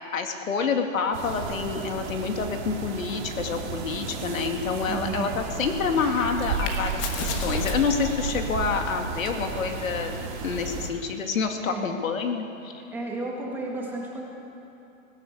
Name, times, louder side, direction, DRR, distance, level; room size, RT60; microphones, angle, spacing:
voice 1, 0.1-10.1 10.4-12.7, left 5 dB, 90° left, 4 dB, 2.5 m, -28 dB
sound 1, 1.1-10.9, right 5 dB, 35° right, 2.0 m, -33 dB
voice 2, 4.9-5.3 11.7-11.9 12.9-14.3, right 2 dB, 5° right, -3 dB, 1.9 m, -33 dB
sound 2, 5.8-11.5, left 5 dB, 25° left, 1.4 m, -39 dB
19.5 x 16.5 x 8.1 m, 3.0 s
hypercardioid pair, 175°, 39 cm